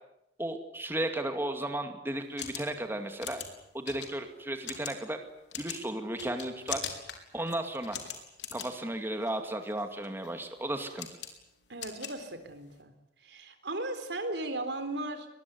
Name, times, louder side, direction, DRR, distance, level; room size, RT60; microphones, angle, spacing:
voice 1, 0.4-3.4 3.7-5.2 5.6-6.8 7.3-8.0 8.5-11.1, right 1 dB, 15° right, 5 dB, 2.4 m, -34 dB
sound 1, 2.1-12.8, left 8 dB, 80° left, 4.5 m, -43 dB
voice 2, 11.7-12.9 13.2-15.3, right 2 dB, 90° right, 8 dB, 4.1 m, -36 dB
23.5 x 21.5 x 9.7 m, 0.83 s
head